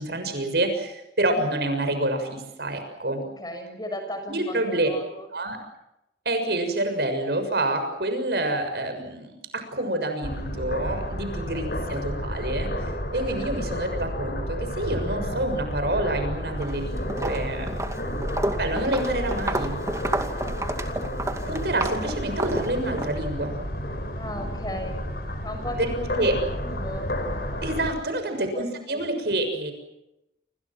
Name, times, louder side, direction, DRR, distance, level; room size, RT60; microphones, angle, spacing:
voice 1, 0.0-3.2 4.3-4.9 5.3-5.6 6.2-12.7 13.1-17.7 18.6-19.8 21.5-23.6 26.1-26.4 27.6-29.7, right 1 dB, 65° right, 7 dB, 6.7 m, -27 dB
voice 2, 3.2-5.3 11.5-11.8 13.3-13.5 17.8-18.2 20.3-20.7 24.2-25.0 25.4-26.3 26.6-27.1 28.1-29.0, left 1 dB, 20° left, 6 dB, 6.8 m, -36 dB
sound 1, 10.2-27.9, equal, 60° left, 5.9 m, -31 dB
Walk footsteps, 16.5-16.8 17.1-23.1, right 1 dB, 15° right, 2.3 m, -30 dB
28.5 x 27.0 x 6.1 m, 0.88 s
head